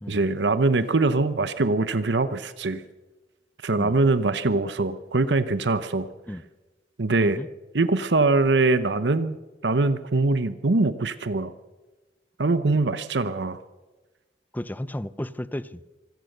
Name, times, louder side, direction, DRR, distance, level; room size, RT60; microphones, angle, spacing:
voice 1, 0.1-2.8 3.6-6.1 7.0-7.4 7.7-9.4 9.6-11.5 12.4-13.6, right 3 dB, 85° right, 0.9 m, -23 dB
voice 2, 14.5-15.9, left 1 dB, 10° left, 0.6 m, -33 dB
25.5 x 17.0 x 6.7 m
head